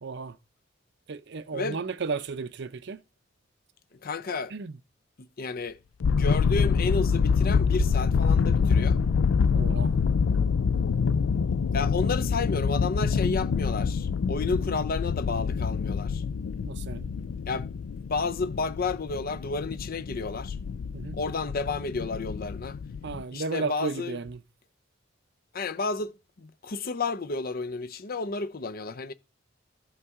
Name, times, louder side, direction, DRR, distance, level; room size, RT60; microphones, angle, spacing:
voice 1, 0.0-0.4 1.1-3.0 4.5-4.8 9.5-9.9 16.6-17.1 20.9-21.2 23.0-24.4, right 4 dB, 60° right, 0.6 m, -34 dB
voice 2, 3.9-4.5 5.2-5.8 6.0-9.0 11.7-16.2 17.2-17.7 18.1-20.6 21.1-22.8 23.3-24.2 25.5-29.1, left 4 dB, 50° left, 0.6 m, -31 dB
sound 1, 6.0-23.2, left 5 dB, 85° left, 0.4 m, -26 dB
14.0 x 5.5 x 3.6 m
head